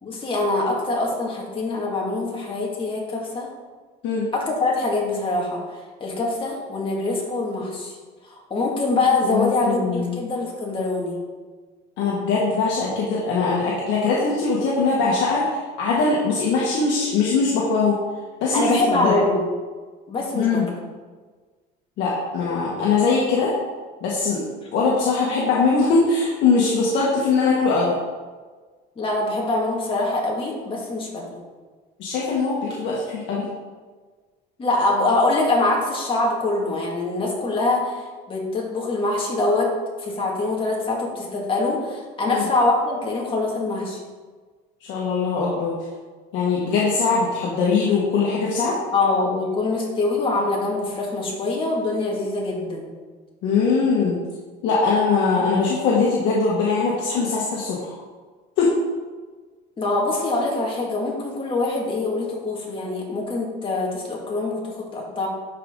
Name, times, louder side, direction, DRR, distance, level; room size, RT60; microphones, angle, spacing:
voice 1, 0.0-3.5 4.3-8.0 8.2-11.2 18.5-19.4 20.1-20.6 29.0-31.4 34.6-39.7 40.0-44.0 48.9-52.9 59.8-65.3, left 2 dB, 25° left, -2 dB, 2.2 m, -24 dB
voice 2, 9.2-10.2 12.0-18.0 18.4-19.1 20.3-20.7 22.0-23.5 24.0-24.4 24.7-27.9 32.0-33.5 42.3-42.4 44.8-45.7 46.3-48.7 53.4-54.2 54.6-57.9 58.6-58.7, left 4 dB, 65° left, -5 dB, 1.7 m, -21 dB
12.0 x 5.0 x 3.9 m, 1.4 s
cardioid pair, 140°, 20 cm